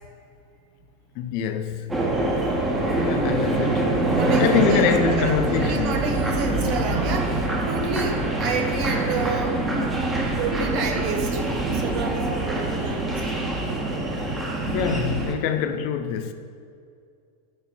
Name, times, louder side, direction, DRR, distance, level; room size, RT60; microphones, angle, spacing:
voice 1, 1.2-1.9 2.9-3.9 4.4-6.0 14.7-16.3, left 7 dB, 45° left, 0.7 m, -24 dB
sound 1, 1.9-15.3, right 2 dB, 15° right, 1.8 m, -24 dB
voice 2, 2.3-2.8 4.1-9.6 10.4-13.3, right 5 dB, 45° right, 1.5 m, -30 dB
11.5 x 4.0 x 7.9 m
figure-of-eight pair, 90°, 0 cm